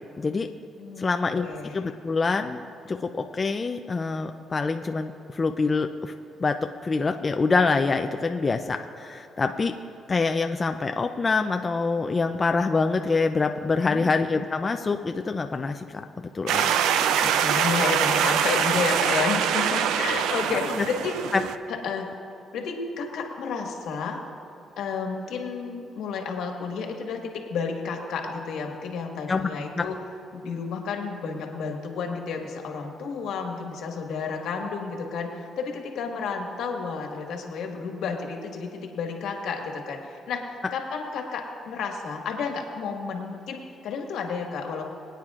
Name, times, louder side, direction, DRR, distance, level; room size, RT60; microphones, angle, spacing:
voice 1, 0.2-0.5 1.0-1.5 1.7-2.6 2.9-6.1 6.4-6.6 6.8-9.7 10.1-16.0 16.3-16.8 17.2-17.3 20.8-20.9 29.3-29.5 29.8-29.9, left 4 dB, 30° left, 5 dB, 0.4 m, -25 dB
voice 2, 0.8-1.9 13.8-14.1 16.8-21.2 21.7-22.1 22.5-24.2 24.8-30.0 30.3-44.9, left 5 dB, 80° left, 2 dB, 1.6 m, -31 dB
sound 1, 16.5-21.5, right 8 dB, 90° right, 0.4 m, -24 dB
23.0 x 9.1 x 2.5 m, 2.8 s
cardioid pair, 90°, 0 cm